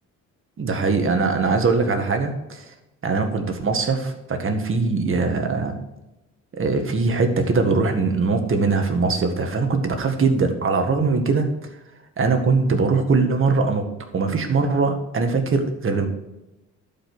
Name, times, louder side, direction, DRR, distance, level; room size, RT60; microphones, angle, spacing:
voice 1, 0.6-2.7 3.0-5.8 6.6-11.5 12.2-13.8 14.1-16.1, right 4 dB, 45° right, 5 dB, 1.8 m, -21 dB
11.5 x 5.4 x 6.2 m, 0.96 s
cardioid pair, 90°, 30 cm